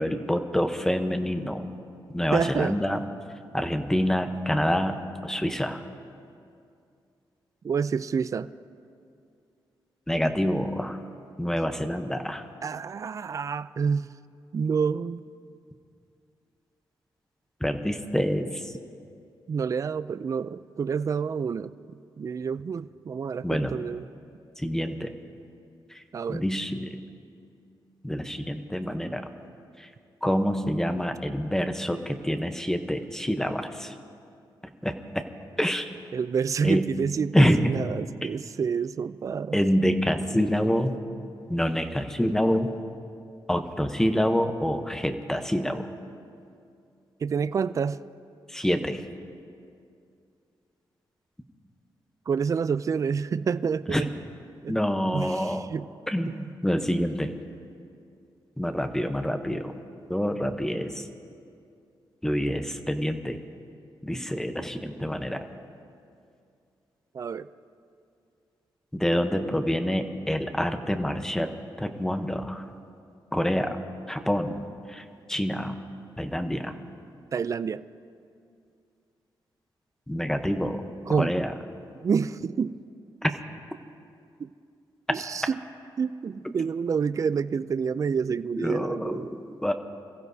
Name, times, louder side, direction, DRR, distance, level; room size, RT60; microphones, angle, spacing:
voice 1, 0.0-1.7 2.1-3.0 3.5-5.8 10.1-11.0 11.4-12.4 17.6-18.8 23.4-23.7 24.6-25.1 25.9-26.0 26.3-27.0 28.0-29.3 29.8-29.9 30.2-33.9 34.8-35.3 35.6-35.9 36.6-37.0 37.3-37.7 38.2-38.3 39.5-41.0 41.5-42.7 43.5-45.9 48.5-49.1 53.9-54.0 54.6-55.7 56.1-56.4 56.6-57.3 58.6-59.7 60.1-61.1 62.2-63.4 64.0-65.4 68.9-72.6 73.3-73.8 74.1-75.8 76.2-76.8 80.1-80.9 81.2-81.5 83.2-83.3 88.6-89.7, equal, 5° left, 7 dB, 0.9 m, -27 dB
voice 2, 2.3-2.7 7.6-8.5 12.6-14.1 14.5-15.2 19.5-24.1 26.1-26.4 36.1-39.6 47.2-48.0 52.3-54.1 54.6-54.8 55.1-55.9 56.3-56.5 67.1-67.5 77.3-77.8 81.1-81.5 82.0-82.8 84.4-84.5 85.1-85.6 86.0-89.3, right 6 dB, 40° right, 14 dB, 0.3 m, -28 dB
27.5 x 15.5 x 2.7 m, 2.4 s
wide cardioid pair, 115°, 9 cm